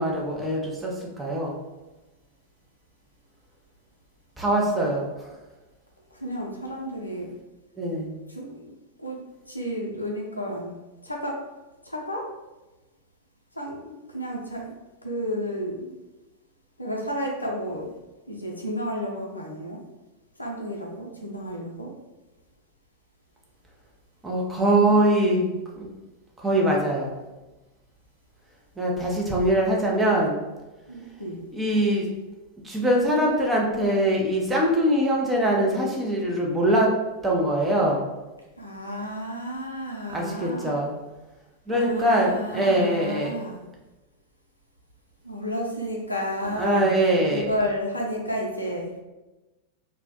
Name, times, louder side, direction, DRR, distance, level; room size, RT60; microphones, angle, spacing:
voice 1, 0.0-1.6 4.4-5.4 7.8-8.1 24.2-25.9 26.4-27.1 28.8-30.4 31.5-32.1 32.6-36.9 37.2-38.1 40.1-40.9 41.7-43.3 46.6-47.5, right 1 dB, 10° right, -2 dB, 0.5 m, -23 dB
voice 2, 6.0-7.3 8.3-8.7 9.0-9.2 9.5-10.8 11.0-11.4 11.8-12.3 13.5-14.7 15.0-16.0 16.8-17.9 18.3-19.8 20.4-21.9 29.6-29.8 30.9-31.4 38.6-40.8 41.7-43.6 45.2-46.9 47.3-48.9, equal, 85° left, -1 dB, 0.4 m, -32 dB
2.1 x 2.1 x 2.7 m, 1.1 s
figure-of-eight pair, 90°, 0 cm